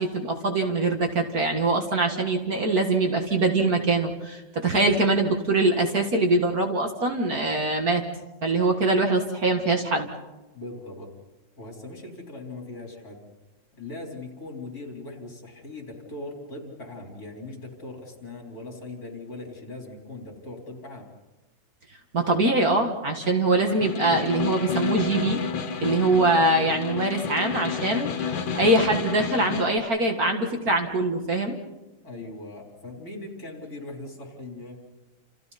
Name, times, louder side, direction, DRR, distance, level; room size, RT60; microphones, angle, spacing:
voice 1, 0.0-8.0 8.4-10.1 22.1-25.4 25.8-31.5, right 2 dB, 45° right, 3 dB, 2.1 m, -23 dB
voice 2, 10.5-11.1 11.6-13.2 13.8-21.1 32.0-34.8, left 2 dB, 45° left, 0 dB, 4.7 m, -40 dB
Snare drum, 23.6-29.8, left 6 dB, 70° left, 2.1 m, -30 dB
29.5 x 28.5 x 4.2 m, 1.1 s
omnidirectional pair, 2.2 m